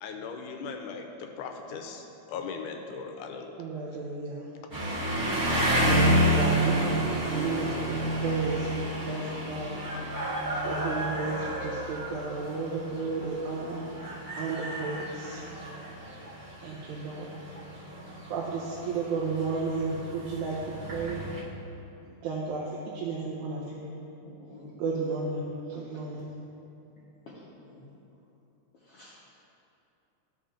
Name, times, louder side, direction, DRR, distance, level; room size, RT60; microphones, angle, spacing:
voice 1, 0.0-3.6, left 5 dB, 85° left, 4 dB, 2.1 m, -39 dB
voice 2, 3.6-4.4 5.9-9.8 10.6-13.8 14.4-15.4 16.6-17.3 18.3-20.6 20.9-21.2 22.2-22.7 22.9-23.9 24.8-26.3, right 4 dB, 80° right, -4 dB, 2.1 m, -33 dB
sound 1, 4.7-21.4, equal, 35° right, 2.0 m, -30 dB
voice 3, 24.2-24.8 27.3-27.9 28.7-29.2, left 2 dB, 65° left, -8 dB, 1.6 m, -50 dB
14.0 x 5.6 x 2.5 m, 2.9 s
omnidirectional pair, 3.6 m